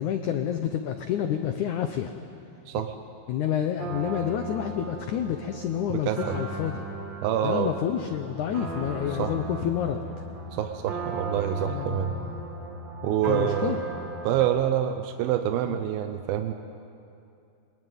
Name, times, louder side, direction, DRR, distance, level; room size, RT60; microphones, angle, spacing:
voice 1, 0.0-2.1 3.3-6.8 7.4-10.0 11.6-12.3 13.3-13.8 15.7-15.8, left 9 dB, 85° left, 6 dB, 1.7 m, -29 dB
sound 1, 3.8-14.4, right 2 dB, 30° right, 2.9 m, -37 dB
voice 2, 5.9-6.4 7.2-7.7 9.1-9.3 10.5-12.2 13.0-13.8 14.2-16.5, right 11 dB, 75° right, 7 dB, 2.5 m, -27 dB
23.5 x 20.5 x 9.3 m, 2.6 s
omnidirectional pair, 4.7 m